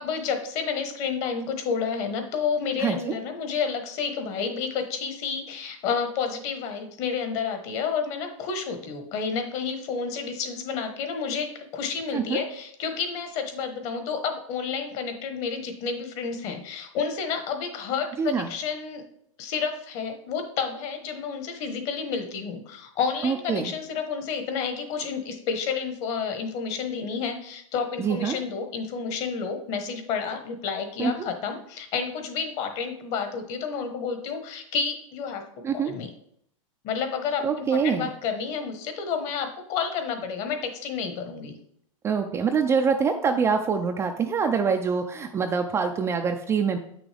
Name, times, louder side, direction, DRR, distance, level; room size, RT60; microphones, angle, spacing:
voice 1, 0.0-19.0 19.4-35.4 35.8-36.1 36.8-41.6, left 6 dB, 40° left, 6 dB, 1.2 m, -30 dB
voice 2, 2.8-3.2 12.1-12.4 18.2-18.5 23.2-23.7 28.0-28.4 31.0-31.3 35.6-35.9 37.4-38.1 42.0-46.8, right 6 dB, 15° right, 5 dB, 0.4 m, -25 dB
8.0 x 6.1 x 3.4 m, 0.70 s
supercardioid pair, 140°, 17 cm